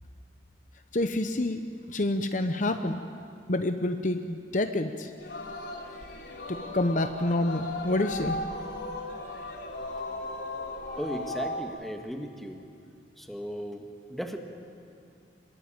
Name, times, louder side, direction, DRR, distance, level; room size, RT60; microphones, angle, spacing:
voice 1, 0.9-1.6 1.9-3.0 3.5-5.1 6.5-8.4, left 1 dB, 45° left, 7 dB, 1.0 m, -28 dB
Singing, 5.2-11.6, left 2 dB, 75° left, 3.3 m, -37 dB
voice 2, 11.0-12.6 13.2-14.4, equal, ahead, 3 dB, 1.8 m, -36 dB
25.0 x 21.5 x 9.0 m, 2.5 s
head